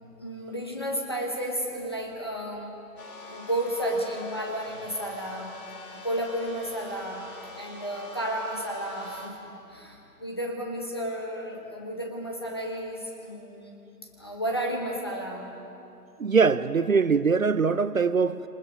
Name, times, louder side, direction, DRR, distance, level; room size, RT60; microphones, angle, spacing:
voice 1, 0.0-2.7 3.3-5.5 5.9-7.3 7.6-9.4 9.7-13.7 14.2-15.5, right 1 dB, 15° left, 1.2 m, -32 dB
sound 1, 3.0-9.3, left 1 dB, 60° left, 5.7 m, -44 dB
voice 2, 16.2-18.4, right 5 dB, 55° right, 0.6 m, -22 dB
29.5 x 27.5 x 5.3 m
hypercardioid pair, 180°, 49 cm